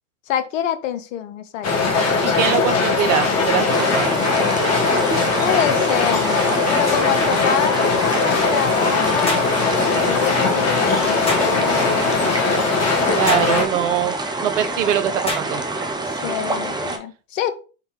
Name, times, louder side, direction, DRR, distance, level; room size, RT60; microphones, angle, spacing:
voice 1, 0.3-2.0 5.4-6.3 6.7-12.3 16.1-17.5, left 9 dB, 80° left, 11 dB, 0.5 m, -26 dB
sound 1, 1.6-13.7, left 4 dB, 45° left, 1.1 m, -20 dB
voice 2, 2.2-4.1 13.1-15.6, right 10 dB, 80° right, 10 dB, 0.6 m, -22 dB
sound 2, 3.7-17.0, right 2 dB, 10° right, 0.5 m, -27 dB
sound 3, 9.3-9.5 11.3-11.5 13.3-13.5 15.3-15.5, left 1 dB, 15° left, 1.2 m, -25 dB
3.8 x 2.6 x 2.8 m, 0.36 s
hypercardioid pair, 65°, 37 cm